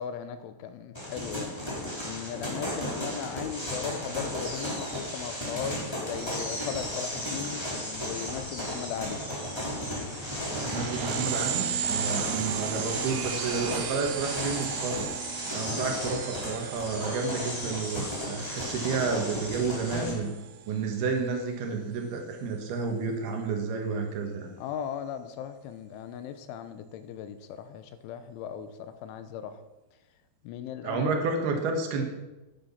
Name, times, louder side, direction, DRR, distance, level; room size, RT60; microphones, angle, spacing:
voice 1, 0.0-1.5 2.0-9.2 15.6-16.1 24.6-29.6 30.4-31.1, left 8 dB, 85° left, 10 dB, 3.3 m, -38 dB
sound 1, 0.9-20.1, left 1 dB, 5° left, 2.4 m, -34 dB
voice 2, 10.5-15.0 15.5-20.3 20.7-24.5 30.8-32.0, right 4 dB, 65° right, 3 dB, 3.2 m, -31 dB
sound 2, 10.5-20.7, right 9 dB, 90° right, 3.4 m, -35 dB
sound 3, 19.9-20.5, left 3 dB, 65° left, 2.2 m, -38 dB
11.0 x 10.5 x 5.8 m, 1.1 s
omnidirectional pair, 5.5 m